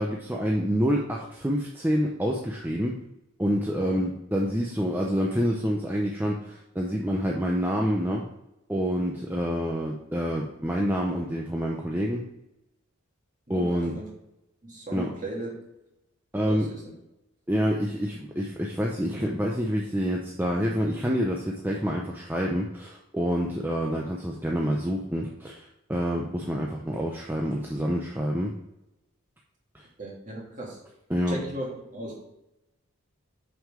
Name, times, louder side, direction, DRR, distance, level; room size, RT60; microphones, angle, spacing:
voice 1, 0.0-3.0 3.4-8.3 8.7-12.2 13.5-14.0 14.9-15.1 16.3-16.7 17.5-28.5 29.7-29.8 31.1-31.4, equal, 10° right, -1 dB, 0.6 m, -27 dB
voice 2, 13.5-14.1 14.6-15.5 16.5-16.8 30.0-30.8 31.3-31.7 31.9-32.2, right 1 dB, 35° right, -3 dB, 2.2 m, -36 dB
6.1 x 5.6 x 4.9 m, 0.90 s
head